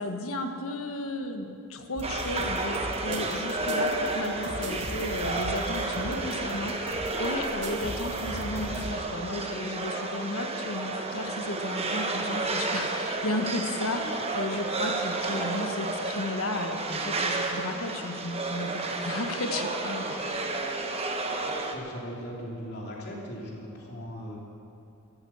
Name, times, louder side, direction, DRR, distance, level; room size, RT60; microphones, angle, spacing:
voice 1, 0.0-20.5, left 2 dB, 75° left, 5 dB, 1.4 m, -34 dB
sound 1, 1.9-8.9, right 1 dB, 55° right, 2.0 m, -39 dB
sound 2, 2.0-21.7, right 2 dB, 30° right, 1.2 m, -31 dB
voice 2, 21.4-24.4, equal, 50° left, -2 dB, 3.1 m, -39 dB
13.5 x 13.5 x 7.2 m, 2.8 s
head